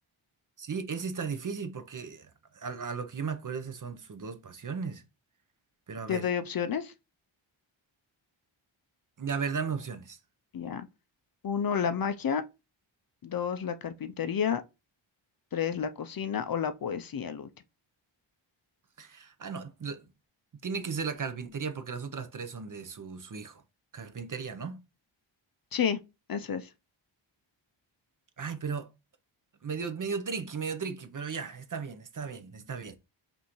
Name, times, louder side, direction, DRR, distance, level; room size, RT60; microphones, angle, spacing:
voice 1, 0.6-5.0 5.9-6.3 9.2-10.2 19.0-20.1 20.6-23.6 23.9-24.8 28.4-28.9 29.6-33.0, right 5 dB, 40° right, 0.6 m, -36 dB
voice 2, 6.1-6.9 10.5-10.9 11.4-12.4 13.2-14.6 15.5-17.5 25.7-26.0 26.3-26.7, left 7 dB, 50° left, 0.5 m, -30 dB
5.3 x 2.6 x 3.0 m
wide cardioid pair, 95°, 49 cm